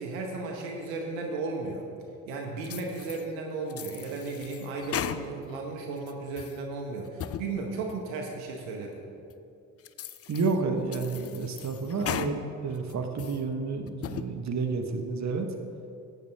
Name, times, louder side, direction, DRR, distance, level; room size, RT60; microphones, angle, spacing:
voice 1, 0.0-1.8 2.3-9.1, right 3 dB, 80° right, 1 dB, 1.0 m, -35 dB
sound 1, 2.6-3.3 3.7-5.6 6.0-6.6 7.0-7.5 7.9-8.0 8.6-8.7 9.3-9.4 9.8-10.6 10.9-12.3 12.8-13.4 13.9-14.3, left 10 dB, 35° left, 0.5 m, -37 dB
voice 2, 10.3-15.5, right 4 dB, 40° right, 5 dB, 1.1 m, -30 dB
12.0 x 8.5 x 3.4 m, 2.6 s
hypercardioid pair, 45°, 41 cm